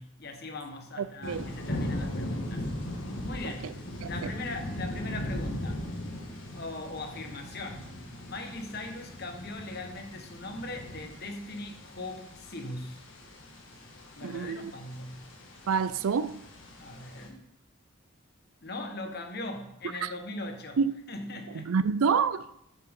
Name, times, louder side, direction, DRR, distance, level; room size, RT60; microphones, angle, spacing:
voice 1, 0.0-2.7 3.2-3.7 4.1-6.0 6.5-7.9 8.3-13.0 14.2-15.3 16.8-17.5 18.6-20.8 21.1-21.7, left 2 dB, 50° left, 1.3 m, -40 dB
sound 1, 1.2-17.3, left 1 dB, 70° left, 1.9 m, -39 dB
voice 2, 4.0-4.3 14.2-14.7 15.7-16.4 20.0-20.1 20.8-21.0 21.5-22.5, right 6 dB, 90° right, 0.4 m, -28 dB
11.5 x 6.8 x 3.7 m
head